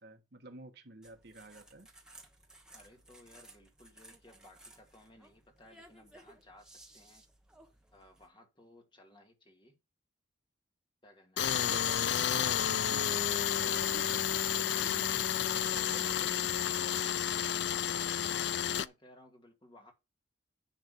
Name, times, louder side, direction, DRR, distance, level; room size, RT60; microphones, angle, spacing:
voice 1, 0.0-1.9 11.5-17.1, right 2 dB, 55° right, 1.4 m, -51 dB
sound 1, 1.0-8.3, right 1 dB, 5° right, 1.2 m, -58 dB
voice 2, 2.7-7.2 7.9-9.8 11.0-11.6 18.2-19.9, left 1 dB, 25° left, 1.9 m, -59 dB
Tools, 11.4-18.9, left 9 dB, 60° left, 0.4 m, -31 dB
10.0 x 3.4 x 6.8 m
head